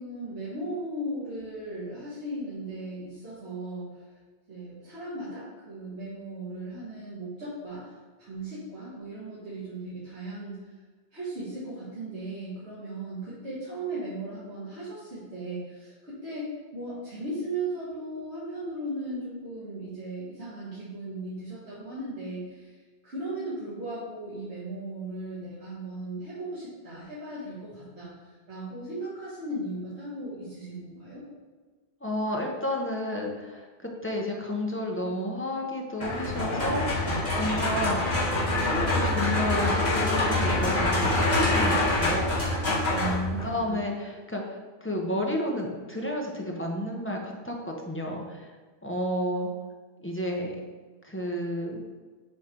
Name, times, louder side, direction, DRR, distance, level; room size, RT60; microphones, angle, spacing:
voice 1, 0.0-3.9 4.5-7.9 8.2-10.6 11.1-22.8 23.0-31.2 42.9-43.8, right 1 dB, 75° right, -11 dB, 1.9 m, -37 dB
voice 2, 32.0-37.1 37.4-38.2 38.6-42.3 43.4-48.5 48.8-49.5 50.0-50.5 51.0-51.8, left 1 dB, 15° left, -1 dB, 0.7 m, -31 dB
sound 1, 36.0-43.6, left 2 dB, 40° left, 2.0 m, -25 dB
7.5 x 3.2 x 4.4 m, 1.4 s
omnidirectional pair, 1.1 m